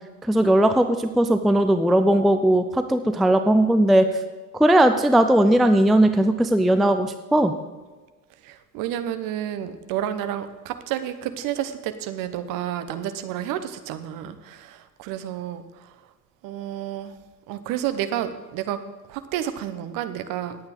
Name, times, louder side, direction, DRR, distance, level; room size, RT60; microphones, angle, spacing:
voice 1, 0.2-4.1 4.5-7.5, right 1 dB, ahead, 8 dB, 0.5 m, -18 dB
voice 2, 8.4-15.9 16.4-17.2 17.5-18.8 19.1-20.6, right 11 dB, 45° right, 11 dB, 1.2 m, -30 dB
18.5 x 8.7 x 3.9 m, 1.3 s
figure-of-eight pair, 75°, 44 cm